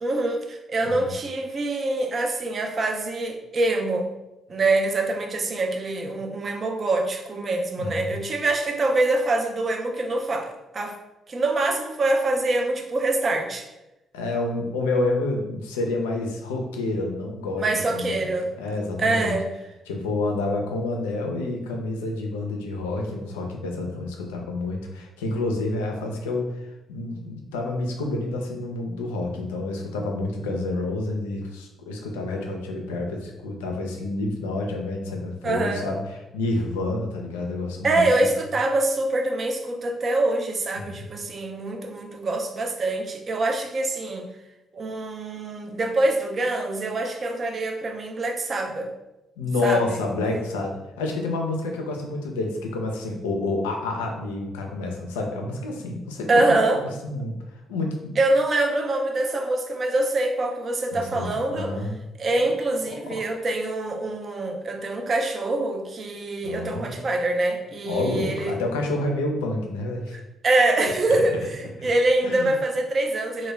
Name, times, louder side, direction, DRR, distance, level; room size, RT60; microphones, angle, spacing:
voice 1, 0.0-4.1 4.5-10.9 11.3-13.7 17.6-18.5 19.0-19.5 35.4-35.9 37.8-44.3 44.7-48.9 49.6-49.8 56.3-56.8 58.2-61.8 62.2-68.6 70.4-73.5, right 2 dB, 50° right, 4 dB, 0.4 m, -24 dB
voice 2, 7.8-8.1 14.1-18.3 18.6-19.4 19.9-36.0 36.3-38.1 40.8-41.1 49.4-56.6 57.0-57.4 57.7-58.2 60.9-62.0 63.1-63.2 66.4-66.9 67.8-70.2 71.1-71.4 71.8-71.9 72.2-72.5, left 2 dB, 90° left, 2 dB, 0.3 m, -29 dB
2.2 x 2.1 x 3.1 m, 0.94 s
hypercardioid pair, 50°, 0 cm